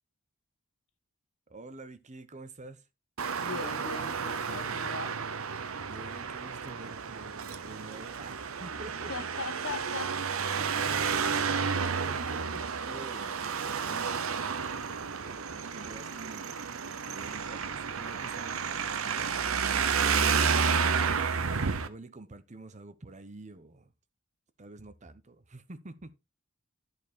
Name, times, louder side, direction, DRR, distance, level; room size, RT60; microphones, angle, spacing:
voice 1, 1.5-2.8 5.8-9.1 10.6-10.8 11.7-12.5 12.7-20.2 21.8-23.9 24.6-26.1, right 2 dB, 35° right, 0.9 m, -48 dB
Traffic noise roadway noise, 3.2-21.9, right 6 dB, 85° right, 0.8 m, -31 dB
voice 2, 3.4-5.1 9.1-10.5 12.2-12.6 20.5-21.3, left 4 dB, 75° left, 1.3 m, -41 dB
11.0 x 4.7 x 4.5 m
head